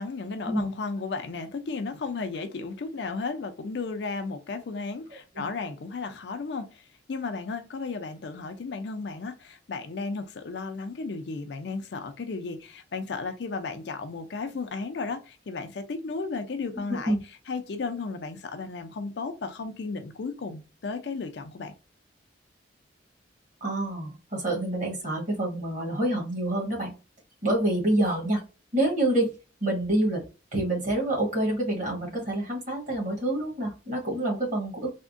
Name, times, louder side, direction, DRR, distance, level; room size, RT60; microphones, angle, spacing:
voice 1, 0.0-17.2 17.5-21.7, left 4 dB, 65° left, 0.4 m, -34 dB
voice 2, 23.6-26.9 27.4-28.4 28.7-29.3 29.6-30.2 30.5-34.9, right 1 dB, 45° right, 1.4 m, -27 dB
3.4 x 2.1 x 2.5 m
head